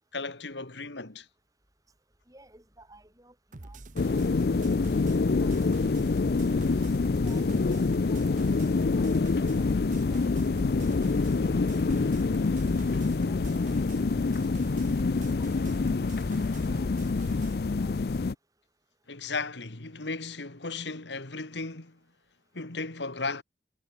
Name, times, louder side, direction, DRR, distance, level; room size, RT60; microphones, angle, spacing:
voice 1, 0.1-1.3 19.1-22.0 22.5-23.4, left 3 dB, 75° left, 2.2 m, -35 dB
voice 2, 2.3-3.3 3.6-3.8 4.1-4.2 5.1-5.6 6.3-6.5 7.2-7.8 8.1-9.3 9.6-9.7 10.1-10.3 10.9-11.0 11.5-12.0 13.2-13.7 14.7-14.9 15.3-15.5 16.7-16.9 17.8-17.9, right 1 dB, 20° right, 5.9 m, -56 dB
sound 1, 3.5-17.6, right 2 dB, 45° right, 1.1 m, -44 dB
sound 2, 4.0-18.3, left 3 dB, 55° left, 0.5 m, -26 dB
head